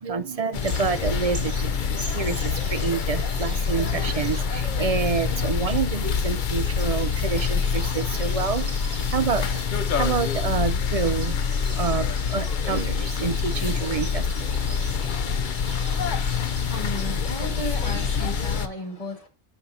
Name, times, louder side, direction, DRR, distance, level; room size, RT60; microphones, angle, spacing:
voice 1, 0.0-15.1, right 5 dB, 45° right, 0.5 m, -28 dB
sound 1, 0.5-18.7, left 6 dB, 55° left, 0.8 m, -26 dB
sound 2, 0.6-18.7, right 1 dB, 85° right, 3.4 m, -42 dB
voice 2, 16.7-19.3, left 1 dB, 35° left, 2.3 m, -34 dB
11.0 x 5.5 x 2.8 m
omnidirectional pair, 1.1 m